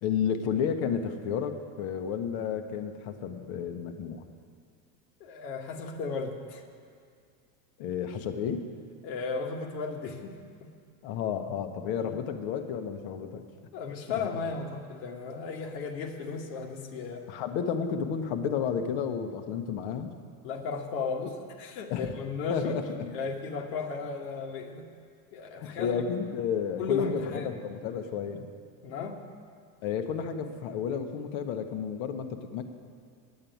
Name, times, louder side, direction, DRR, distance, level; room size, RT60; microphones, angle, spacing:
voice 1, 0.0-4.2 7.8-8.6 11.0-13.4 14.1-14.2 17.3-20.1 21.9-22.2 22.5-23.0 25.6-28.5 29.8-32.6, left 7 dB, 60° left, 6 dB, 1.2 m, -32 dB
voice 2, 5.2-6.6 9.0-10.3 10.6-10.7 12.0-12.2 13.7-17.2 20.4-24.8 25.3-26.0 26.8-27.6 28.8-29.2, left 5 dB, 80° left, 1 dB, 1.5 m, -35 dB
8.7 x 8.6 x 9.2 m, 2.1 s
supercardioid pair, 130°, 50 cm